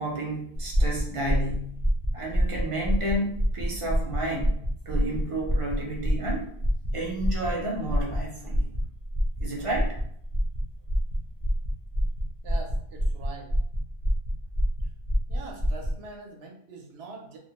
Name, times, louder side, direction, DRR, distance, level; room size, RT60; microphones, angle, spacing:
voice 1, 0.0-1.8 2.1-4.5 4.9-6.5 6.9-8.7 9.4-9.9, right 1 dB, 40° right, -2 dB, 0.5 m, -31 dB
sound 1, 0.6-16.0, equal, 50° left, 0.3 m, -27 dB
voice 2, 12.4-13.5 15.3-17.4, right 3 dB, 75° right, 0 dB, 0.8 m, -43 dB
2.2 x 2.1 x 2.9 m, 0.66 s
omnidirectional pair, 1.1 m